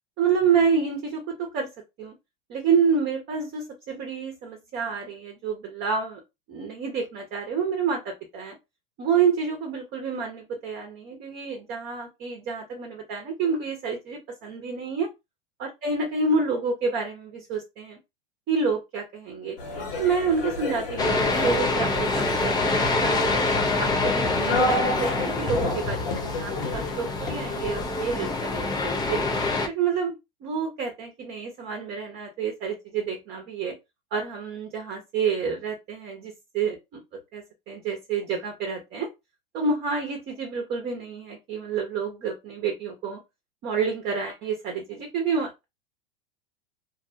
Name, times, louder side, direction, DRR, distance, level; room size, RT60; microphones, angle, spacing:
voice 1, 0.2-1.7 2.0-2.1 2.5-6.2 6.5-8.5 9.0-15.1 15.6-18.0 18.5-19.6 20.0-23.4 23.8-29.2 29.7-30.1 30.4-33.7 34.1-37.0 37.3-39.1 39.5-43.2 43.6-45.6, right 5 dB, 35° right, 2 dB, 0.8 m, -28 dB
sound 1, 19.6-27.8, left 2 dB, 70° left, 1.3 m, -31 dB
sound 2, 21.0-29.7, left 3 dB, 15° left, 0.4 m, -26 dB
2.6 x 2.2 x 2.6 m, 0.23 s
hypercardioid pair, 110°, 29 cm